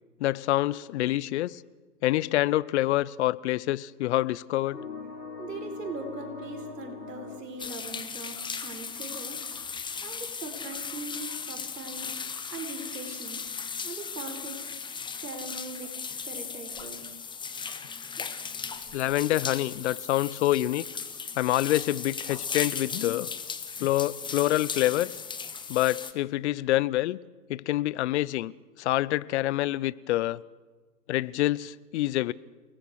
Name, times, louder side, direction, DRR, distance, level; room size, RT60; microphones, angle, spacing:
voice 1, 0.2-1.6 2.0-4.8 13.9-14.0 18.9-20.9 21.4-23.3 23.8-25.1 25.7-27.2 27.5-28.5 28.8-30.4 31.1-32.3, left 15 dB, 50° left, 0.7 m, -26 dB
sound 1, 4.7-8.6, left 4 dB, 90° left, 4.0 m, -42 dB
voice 2, 5.4-9.4 9.7-12.1 12.5-13.4 13.8-14.6 15.2-16.0 16.3-17.1, right 3 dB, 85° right, 4.1 m, -40 dB
sound 2, 7.6-26.1, left 6 dB, 10° left, 1.1 m, -37 dB
29.5 x 19.0 x 4.8 m
hypercardioid pair, 115°, 47 cm